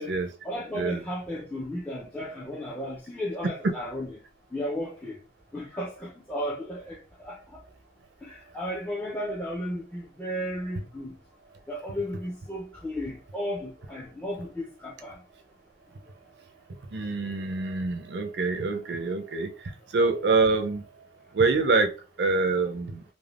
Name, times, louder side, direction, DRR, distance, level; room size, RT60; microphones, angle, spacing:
voice 1, 0.4-4.2 4.5-5.1 5.5-7.6 8.2-11.1 11.7-15.1, equal, 10° left, 0.4 m, -34 dB
voice 2, 16.9-19.5 19.9-20.8 21.3-21.9 22.2-23.0, right 3 dB, 65° right, 0.4 m, -25 dB
3.3 x 2.1 x 2.3 m
head